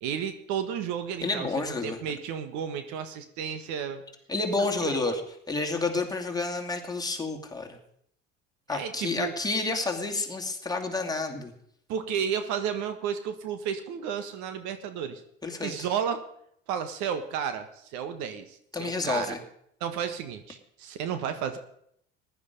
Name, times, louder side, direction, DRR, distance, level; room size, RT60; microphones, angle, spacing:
voice 1, 0.0-4.0 4.6-5.2 8.7-9.4 11.9-15.2 15.6-16.2 16.7-19.3 19.8-21.6, right 8 dB, 70° right, 9 dB, 1.5 m, -32 dB
voice 2, 1.2-2.0 4.3-5.2 5.5-7.8 8.7-11.5 15.4-15.9 18.7-19.4, left 3 dB, 10° left, 1 dB, 2.5 m, -30 dB
15.0 x 11.0 x 5.3 m, 0.70 s
supercardioid pair, 85°, 31 cm